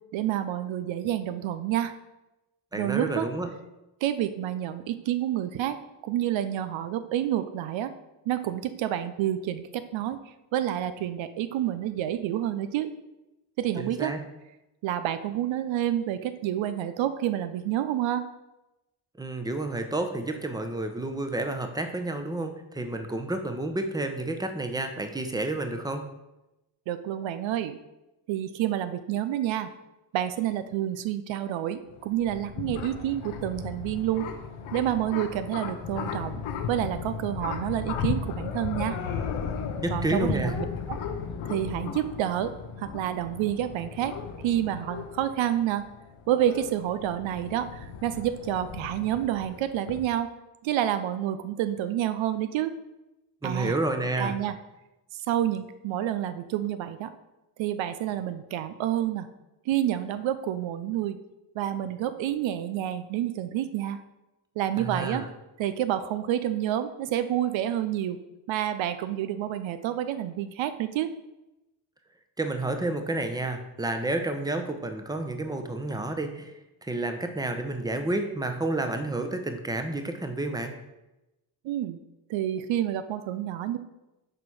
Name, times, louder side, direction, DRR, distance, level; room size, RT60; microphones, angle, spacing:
voice 1, 0.1-2.0 2.7-3.3 4.0-5.8 6.0-7.9 8.3-10.2 10.5-12.9 13.6-14.1 14.8-18.3 26.9-27.8 28.3-29.7 30.1-34.3 34.7-36.4 36.7-39.0 39.9-40.6 40.9-41.0 41.4-45.9 46.3-50.3 50.6-52.7 53.4-53.8 54.2-54.5 55.3-57.1 57.6-59.3 59.7-61.2 61.5-64.0 64.6-65.2 65.6-68.2 68.5-71.1 81.6-82.0 82.3-83.8, right 11 dB, 80° right, 11 dB, 0.6 m, -29 dB
voice 2, 2.7-3.5 13.8-14.2 19.2-26.0 39.8-40.5 53.4-54.3 64.8-65.3 72.4-76.5 76.8-80.7, right 2 dB, 10° right, 6 dB, 0.9 m, -30 dB
sound 1, 31.9-50.0, left 6 dB, 85° left, 0.9 m, -36 dB
6.7 x 4.3 x 4.8 m, 0.97 s
cardioid pair, 70°, 45 cm